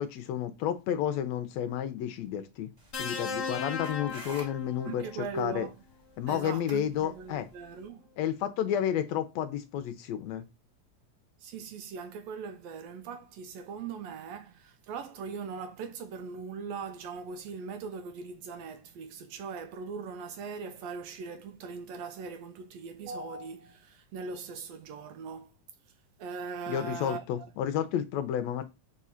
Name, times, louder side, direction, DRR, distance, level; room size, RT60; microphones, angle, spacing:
voice 1, 0.0-2.7 3.0-5.7 6.2-7.5 8.2-10.4 26.7-28.6, left 10 dB, 75° left, 1.7 m, -31 dB
sound 1, 2.8-7.9, right 1 dB, 20° right, 1.3 m, -52 dB
sound 2, 2.9-5.2 6.5-6.7, left 5 dB, 50° left, 1.3 m, -37 dB
voice 2, 4.9-5.8 6.3-8.1 11.4-25.5 26.2-27.5, right 5 dB, 75° right, 1.7 m, -40 dB
4.9 x 3.7 x 5.6 m
omnidirectional pair, 3.3 m